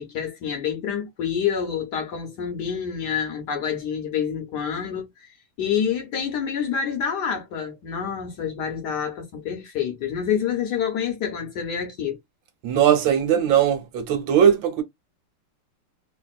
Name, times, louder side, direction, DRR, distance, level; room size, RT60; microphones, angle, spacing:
voice 1, 0.0-12.2, left 7 dB, 60° left, 1.2 m, -27 dB
voice 2, 12.6-14.8, right 9 dB, 70° right, 1.4 m, -19 dB
3.3 x 2.5 x 2.3 m
omnidirectional pair, 2.3 m